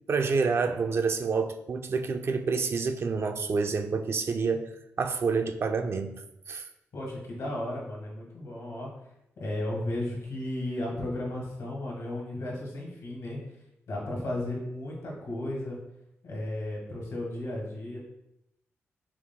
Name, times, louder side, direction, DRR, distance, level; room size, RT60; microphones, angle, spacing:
voice 1, 0.1-4.7 5.0-6.2 6.5-6.7, right 4 dB, 55° right, 6 dB, 0.4 m, -28 dB
voice 2, 6.9-8.9 9.4-13.4 13.9-15.8 16.2-18.0, left 1 dB, 80° left, -2 dB, 1.4 m, -34 dB
4.7 x 2.0 x 3.6 m, 0.82 s
cardioid pair, 70°, 5 cm